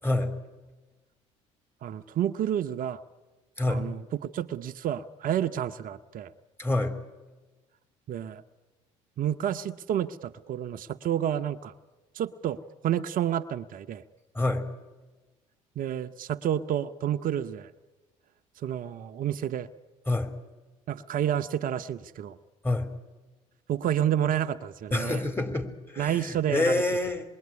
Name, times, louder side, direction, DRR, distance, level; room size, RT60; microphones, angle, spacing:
voice 1, 1.8-3.0 3.7-6.3 8.1-8.4 9.2-11.7 12.1-14.0 15.8-17.7 18.6-19.7 20.9-22.4 23.7-25.2 26.0-26.8, right 10 dB, 55° right, 9 dB, 1.0 m, -30 dB
voice 2, 6.6-7.0 14.3-14.6 20.1-20.3 22.6-22.9 24.9-27.2, left 2 dB, 15° left, 6 dB, 4.3 m, -27 dB
27.0 x 21.5 x 9.7 m, 1.2 s
hypercardioid pair, 60°, 17 cm